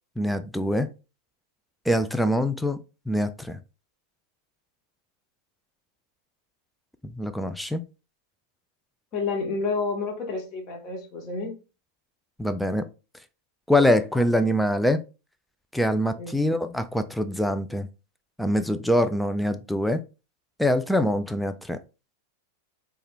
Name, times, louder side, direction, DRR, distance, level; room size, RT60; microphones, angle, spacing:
voice 1, 0.2-0.9 1.9-2.8 3.1-3.6 7.0-7.8 12.4-12.9 13.7-15.0 15.7-17.9 18.4-20.0 20.6-21.8, left 1 dB, ahead, 0.3 m, -24 dB
voice 2, 9.1-11.5 14.1-14.5 16.2-16.4, left 4 dB, 35° left, 1.0 m, -30 dB
4.4 x 2.3 x 3.4 m
figure-of-eight pair, 90°, 0 cm